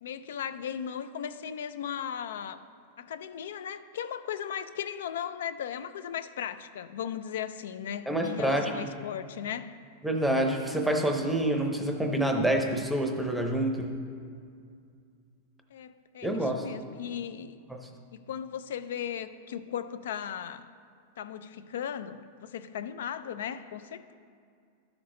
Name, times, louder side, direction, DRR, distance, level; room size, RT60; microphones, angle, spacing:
voice 1, 0.0-2.6 3.0-9.7 15.7-17.6 18.1-20.7 21.2-24.1, left 9 dB, 80° left, 12 dB, 0.4 m, -37 dB
voice 2, 8.1-8.7 10.0-13.9 16.2-16.6, right 1 dB, ahead, 3 dB, 0.7 m, -27 dB
13.0 x 6.1 x 3.8 m, 2.3 s
supercardioid pair, 165°, 0 cm